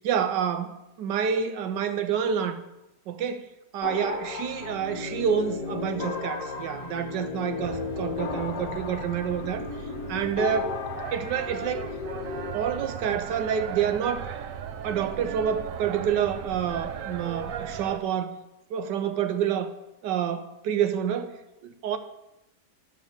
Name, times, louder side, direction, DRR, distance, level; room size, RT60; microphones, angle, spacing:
voice 1, 0.0-2.6 3.1-9.7 10.1-10.7 11.1-11.9 12.5-14.3 14.8-18.4 18.7-19.7 20.0-22.0, right 8 dB, 80° right, 1.4 m, -28 dB
sound 1, 3.8-12.5, left 5 dB, 65° left, 1.5 m, -34 dB
sound 2, 7.6-18.0, right 8 dB, 65° right, 0.9 m, -37 dB
10.0 x 5.5 x 7.0 m
omnidirectional pair, 1.9 m